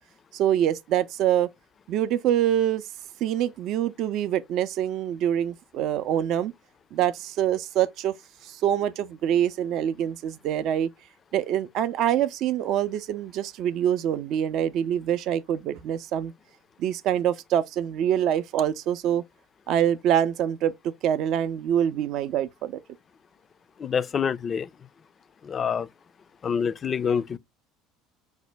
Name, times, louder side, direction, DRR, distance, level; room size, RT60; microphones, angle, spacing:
voice 1, 0.3-1.5 1.9-2.8 3.2-6.5 6.9-8.1 8.4-10.9 11.3-16.3 16.8-19.2 19.7-22.8, right 10 dB, 55° right, 0.4 m, -25 dB
voice 2, 23.8-24.7 25.5-25.9 26.4-27.4, left 7 dB, 35° left, 0.3 m, -26 dB
4.9 x 2.1 x 3.3 m
hypercardioid pair, 65°, 0 cm